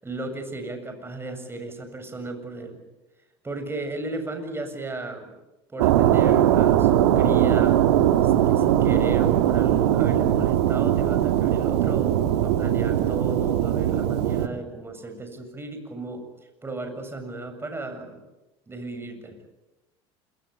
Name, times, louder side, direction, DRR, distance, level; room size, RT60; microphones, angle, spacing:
voice 1, 0.0-2.8 3.4-5.3 5.7-7.8 8.2-16.3 16.6-18.2 18.7-19.4, right 2 dB, 15° right, 7 dB, 7.4 m, -35 dB
sound 1, 5.8-14.5, right 11 dB, 85° right, 2.0 m, -20 dB
27.5 x 22.5 x 8.5 m, 1.0 s
supercardioid pair, 95°, 14 cm